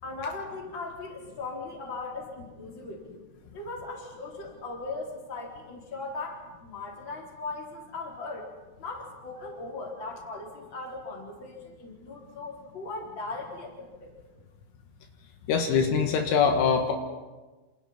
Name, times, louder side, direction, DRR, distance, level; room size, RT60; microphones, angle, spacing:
voice 1, 0.0-3.1 3.5-8.5 8.8-14.1, left 3 dB, 25° left, -1 dB, 3.9 m, -38 dB
voice 2, 15.5-16.9, left 6 dB, 75° left, 3 dB, 4.0 m, -23 dB
28.0 x 27.5 x 4.4 m, 1.2 s
omnidirectional pair, 5.9 m